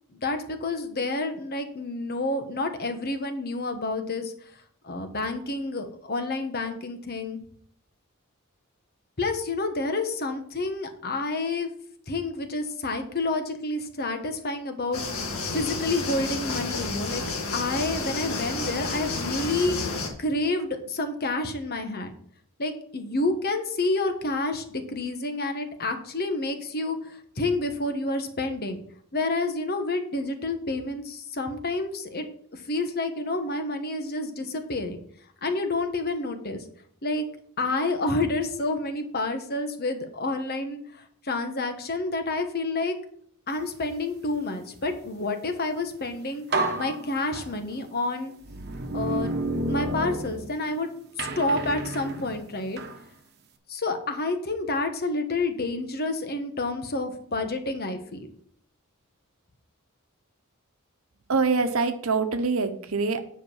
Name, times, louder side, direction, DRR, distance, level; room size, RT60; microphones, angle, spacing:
voice 1, 0.1-4.3 4.8-7.4 9.2-11.7 12.1-17.2 17.5-22.1 22.6-28.8 29.1-32.2 32.5-35.0 35.4-36.6 37.0-37.2 37.6-43.0 43.5-48.3 48.9-50.9 51.2-52.8 53.7-58.3, left 2 dB, 45° left, 6 dB, 1.3 m, -29 dB
sound 1, 14.9-20.1, left 3 dB, 75° left, 2.0 m, -31 dB
sound 2, 45.9-46.1 46.5-47.8 48.4-50.8 51.2-53.0, right 2 dB, 50° right, 1.1 m, -31 dB
voice 2, 61.3-63.3, right 4 dB, 75° right, 9 dB, 1.0 m, -24 dB
9.7 x 5.3 x 5.6 m, 0.62 s
head